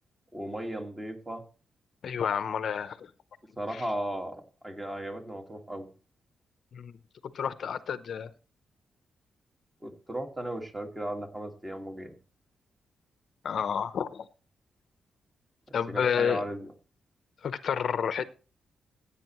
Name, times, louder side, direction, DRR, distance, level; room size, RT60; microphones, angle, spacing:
voice 1, 0.3-1.4 3.6-5.9 9.8-12.2 15.9-16.7, right 1 dB, 15° right, 4 dB, 1.8 m, -36 dB
voice 2, 2.0-3.1 3.7-3.9 6.7-6.9 7.3-8.3 13.4-14.3 15.7-16.5 17.4-18.2, left 7 dB, 60° left, 13 dB, 0.7 m, -30 dB
15.5 x 8.7 x 3.1 m, 0.35 s
cardioid pair, 105°, 0 cm